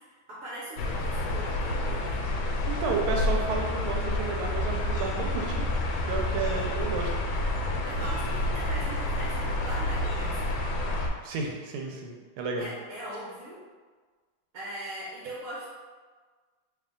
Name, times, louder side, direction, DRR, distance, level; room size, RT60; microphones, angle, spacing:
voice 1, 0.3-2.2 7.8-10.5 12.6-13.6 14.5-15.7, right 1 dB, 60° right, -7 dB, 0.9 m, -40 dB
sound 1, 0.8-11.1, left 2 dB, 80° left, 1.4 m, -29 dB
voice 2, 2.6-5.7 6.0-7.1 11.2-12.7, right 5 dB, 90° right, 0 dB, 1.5 m, -32 dB
3.3 x 2.7 x 3.7 m, 1.4 s
omnidirectional pair, 2.2 m